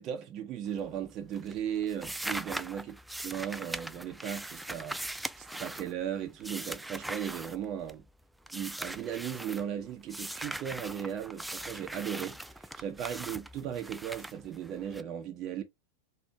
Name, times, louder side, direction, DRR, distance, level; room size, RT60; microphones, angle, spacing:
voice 1, 0.0-2.9 3.2-8.0 8.5-15.6, right 9 dB, 35° right, 0.8 m, -37 dB
sound 1, 0.6-1.1 1.3-8.1 8.5-9.6 10.1-15.0, right 1 dB, 5° right, 0.3 m, -40 dB
4.4 x 2.7 x 4.4 m
figure-of-eight pair, 90°, 0 cm